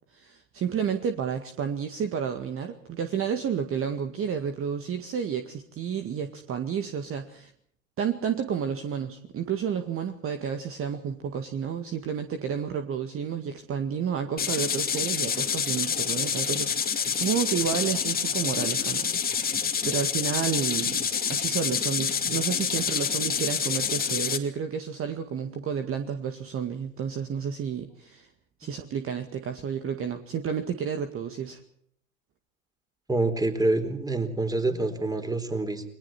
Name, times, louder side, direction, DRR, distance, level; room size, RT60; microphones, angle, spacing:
voice 1, 0.1-7.5 8.0-21.0 21.3-28.3 28.6-31.6, right 7 dB, 30° right, 7 dB, 2.0 m, -31 dB
sound 1, 14.4-24.4, left 7 dB, 20° left, 2.6 m, -27 dB
voice 2, 33.1-35.8, right 2 dB, 10° right, 8 dB, 4.1 m, -26 dB
29.5 x 22.0 x 4.5 m, 0.65 s
hypercardioid pair, 90°, 42 cm